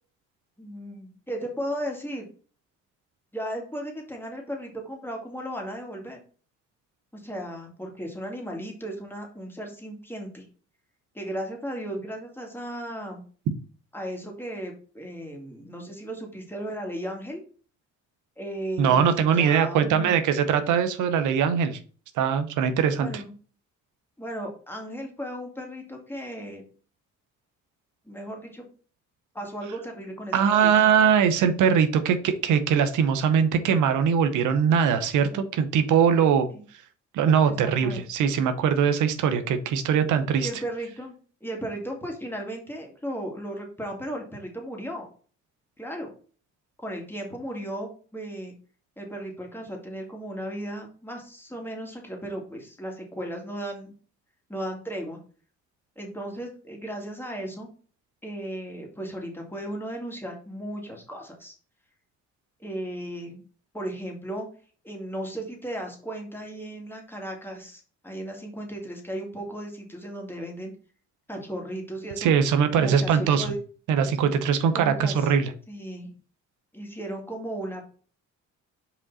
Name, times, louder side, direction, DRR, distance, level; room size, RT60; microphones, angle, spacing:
voice 1, 0.6-2.3 3.3-6.2 7.1-10.5 11.1-13.2 13.9-17.4 18.4-20.2 22.9-23.3 24.2-26.6 28.1-28.7 29.3-30.7 35.3-35.4 36.5-36.6 37.5-38.0 40.4-45.1 45.8-46.1 46.8-48.5 49.0-53.9 54.5-55.2 56.0-57.7 58.2-61.5 62.6-63.4 63.7-64.5 64.8-70.7 71.3-72.3 72.7-73.6 74.7-75.3 75.7-76.1 76.7-77.8, right 1 dB, 5° left, 1 dB, 2.3 m, -35 dB
voice 2, 18.8-21.8 22.2-23.2 30.3-36.5 37.1-40.5 72.2-73.5 73.9-75.5, right 7 dB, 85° right, 10 dB, 0.9 m, -21 dB
5.3 x 5.0 x 4.1 m, 0.40 s
cardioid pair, 90°, 30 cm